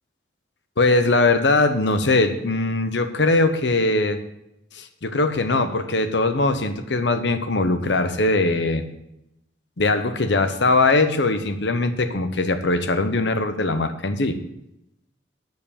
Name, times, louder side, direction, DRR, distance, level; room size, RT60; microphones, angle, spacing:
voice 1, 0.8-4.2 4.7-8.9 9.8-14.4, left 2 dB, 70° left, 9 dB, 0.9 m, -21 dB
8.1 x 7.0 x 6.8 m, 0.84 s
head